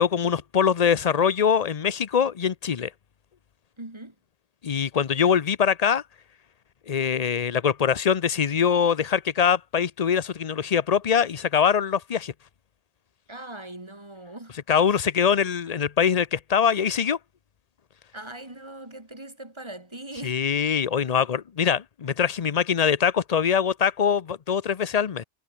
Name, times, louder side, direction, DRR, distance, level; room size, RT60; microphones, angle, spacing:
voice 1, 0.0-2.9 4.6-6.0 6.9-12.3 14.7-17.2 20.2-25.2, left 7 dB, 40° left, 0.7 m, -23 dB
voice 2, 3.8-4.1 13.3-14.6 18.1-20.4, right 1 dB, 25° right, 2.7 m, -40 dB
omnidirectional pair, 1.2 m